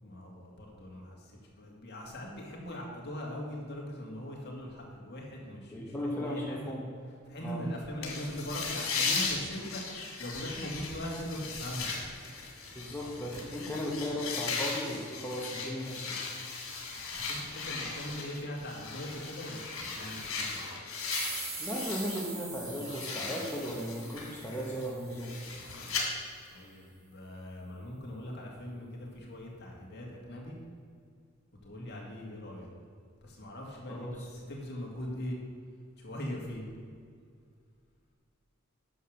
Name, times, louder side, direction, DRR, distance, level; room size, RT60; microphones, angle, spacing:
voice 1, 0.0-6.8 7.3-9.8 10.2-11.9 17.1-20.6 26.5-30.6 31.6-32.7 33.2-35.4 36.0-36.7, equal, 55° left, -1 dB, 2.3 m, -41 dB
voice 2, 5.7-6.8 7.4-7.7 12.7-16.2 21.6-25.4 33.9-34.1, equal, 10° left, -4 dB, 1.4 m, -36 dB
sound 1, 8.0-22.3 22.6-26.0, left 4 dB, 85° left, 2.5 m, -37 dB
sound 2, 21.1-25.8, right 4 dB, 70° right, 2.6 m, -43 dB
9.9 x 6.6 x 6.6 m, 2.2 s
head